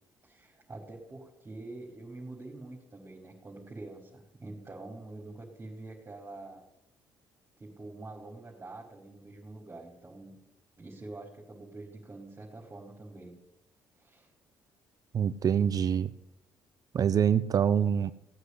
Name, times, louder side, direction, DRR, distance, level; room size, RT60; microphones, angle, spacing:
voice 1, 0.2-6.6 7.6-10.4 10.8-13.4 14.0-14.3, right 2 dB, 25° right, -2 dB, 4.9 m, -46 dB
voice 2, 15.1-16.1 16.9-18.1, right 8 dB, 50° right, 14 dB, 0.8 m, -25 dB
17.5 x 8.3 x 9.8 m, 0.83 s
supercardioid pair, 60°, 8 cm